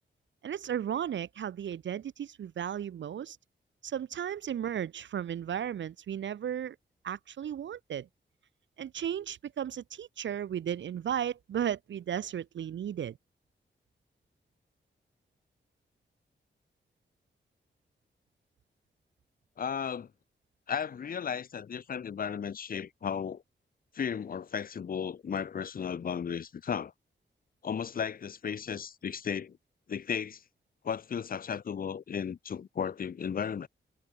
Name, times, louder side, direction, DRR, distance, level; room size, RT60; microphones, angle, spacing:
voice 1, 0.4-3.4 3.8-6.8 7.0-8.1 8.8-13.2, right 9 dB, 75° right, 0.7 m, -35 dB
voice 2, 19.6-20.1 20.7-23.4 23.9-26.9 27.6-29.6 29.9-30.4 30.8-33.7, left 7 dB, 50° left, 0.8 m, -35 dB
wide cardioid pair, 165°, 19 cm